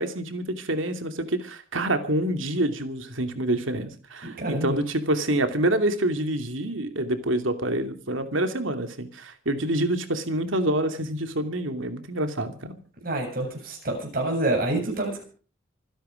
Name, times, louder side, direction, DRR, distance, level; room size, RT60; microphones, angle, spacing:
voice 1, 0.0-12.8, right 1 dB, 80° right, 8 dB, 2.8 m, -27 dB
voice 2, 4.2-4.8 13.0-15.2, right 2 dB, 45° right, 2 dB, 7.8 m, -27 dB
26.5 x 10.5 x 5.1 m, 0.39 s
head